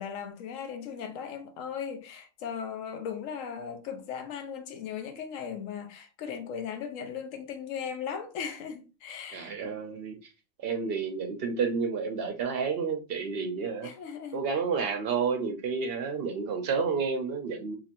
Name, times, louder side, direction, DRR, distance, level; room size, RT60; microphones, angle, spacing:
voice 1, 0.0-9.5 13.8-14.5, left 7 dB, 75° left, 1.0 m, -37 dB
voice 2, 9.3-10.2 10.6-13.9 14.3-17.8, right 5 dB, 60° right, 0.7 m, -30 dB
2.9 x 2.8 x 2.5 m
omnidirectional pair, 1.4 m